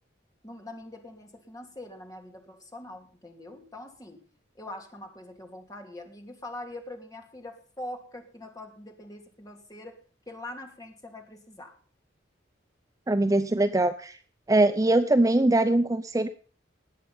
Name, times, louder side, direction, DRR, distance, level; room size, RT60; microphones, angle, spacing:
voice 1, 0.4-4.2 4.5-10.0 10.3-11.7, left 1 dB, 20° left, 3 dB, 2.7 m, -43 dB
voice 2, 13.1-14.2 14.5-16.3, right 2 dB, 20° right, 8 dB, 0.6 m, -22 dB
19.5 x 8.4 x 5.6 m, 0.42 s
head